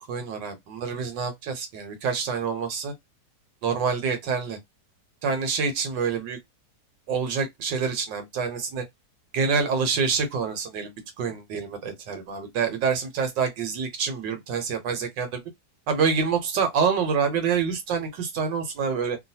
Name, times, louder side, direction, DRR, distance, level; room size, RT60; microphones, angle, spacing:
voice 1, 0.1-2.9 3.6-4.6 5.2-6.4 7.1-8.8 9.3-15.4 15.9-19.2, right 5 dB, 75° right, 1.6 m, -27 dB
3.2 x 2.6 x 2.7 m
omnidirectional pair, 1.9 m